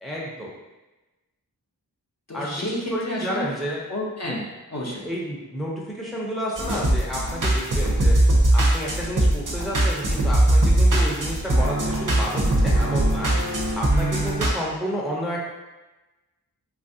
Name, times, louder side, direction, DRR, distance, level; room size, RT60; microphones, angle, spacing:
voice 1, 0.0-0.5 2.3-3.8 4.3-4.4 5.0-8.1 8.5-13.3 13.8-15.5, equal, ahead, -4 dB, 0.5 m, -30 dB
voice 2, 2.3-3.5 3.9-5.0, left 1 dB, 45° left, -3 dB, 0.6 m, -30 dB
sound 1, 6.6-14.5, right 1 dB, 55° right, 0.7 m, -20 dB
3.2 x 2.4 x 2.6 m, 1.1 s
wide cardioid pair, 45°, 38 cm